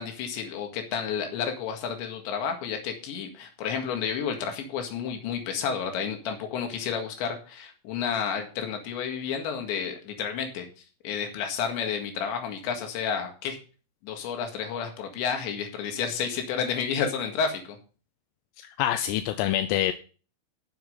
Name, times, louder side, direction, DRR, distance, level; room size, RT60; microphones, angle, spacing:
voice 1, 0.0-10.7 11.0-13.6 14.0-17.8, left 7 dB, 65° left, 4 dB, 3.9 m, -31 dB
voice 2, 18.8-19.9, left 12 dB, 85° left, 9 dB, 3.3 m, -25 dB
9.7 x 7.3 x 5.7 m, 0.38 s
omnidirectional pair, 5.9 m